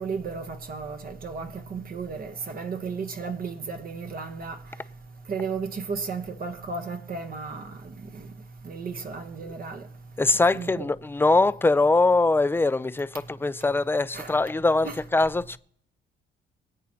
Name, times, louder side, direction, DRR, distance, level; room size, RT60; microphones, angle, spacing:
voice 1, 0.0-4.6 5.3-8.3 8.6-9.8 10.5-10.9 14.1-14.4 14.8-15.0, right 5 dB, 50° right, 1.1 m, -34 dB
voice 2, 10.2-15.6, left 3 dB, 10° left, 0.5 m, -22 dB
24.5 x 8.4 x 2.8 m
cardioid pair, 90°, 20 cm